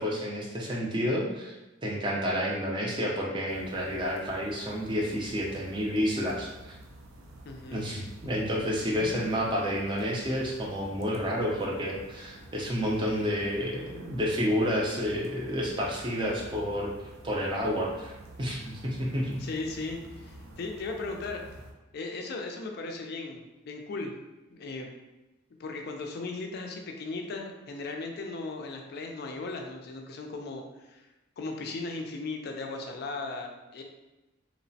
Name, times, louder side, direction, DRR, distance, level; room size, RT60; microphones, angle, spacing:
voice 1, 0.0-1.6 1.8-6.8 7.7-16.9 17.2-19.4, equal, 25° right, -2 dB, 0.4 m, -30 dB
sound 1, 3.5-21.7, right 1 dB, 80° right, 0.4 m, -49 dB
voice 2, 7.5-7.8 19.4-21.4 21.9-24.1 24.5-24.9 25.6-31.1 31.4-33.8, left 3 dB, 50° left, 2 dB, 0.3 m, -37 dB
3.0 x 2.0 x 2.6 m, 1.0 s
head